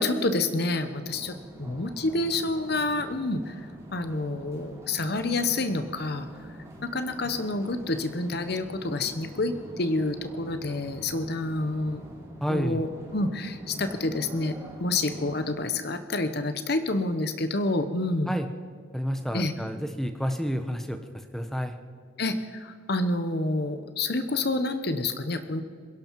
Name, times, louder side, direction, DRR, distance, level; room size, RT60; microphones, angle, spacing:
voice 1, 0.0-3.6 3.9-6.3 6.8-12.0 12.5-14.5 14.8-18.3 19.3-19.5 22.2-25.6, left 2 dB, 50° left, 10 dB, 0.9 m, -28 dB
sound 1, 1.0-15.5, equal, 15° right, 3.7 m, -44 dB
voice 2, 12.4-12.8 18.3-18.5 18.9-21.0 21.3-21.7, equal, ahead, 6 dB, 1.0 m, -29 dB
27.5 x 11.5 x 4.6 m, 2.1 s
head